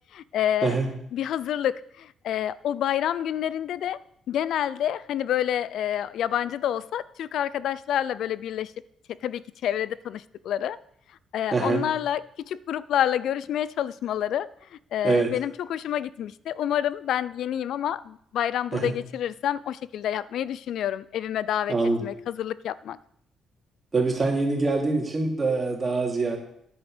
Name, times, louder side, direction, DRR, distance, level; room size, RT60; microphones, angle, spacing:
voice 1, 0.1-0.8 1.1-4.0 4.3-8.7 9.2-10.8 11.3-12.2 12.5-23.0, left 10 dB, 75° left, 18 dB, 0.4 m, -28 dB
voice 2, 11.5-11.8 15.0-15.3 18.7-18.9 21.7-22.0 23.9-26.4, right 3 dB, 30° right, 0 dB, 2.9 m, -24 dB
10.0 x 7.9 x 5.0 m, 0.72 s
cardioid pair, 90°, 0 cm